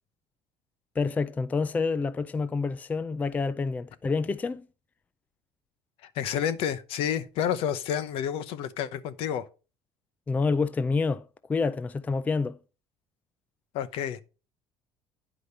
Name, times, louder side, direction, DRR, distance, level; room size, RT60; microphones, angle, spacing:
voice 1, 1.0-4.6 10.3-12.6, left 4 dB, 15° left, 0.4 m, -28 dB
voice 2, 6.0-9.5 13.7-14.2, left 9 dB, 65° left, 0.9 m, -30 dB
9.9 x 5.1 x 5.4 m
cardioid pair, 135°, 10 cm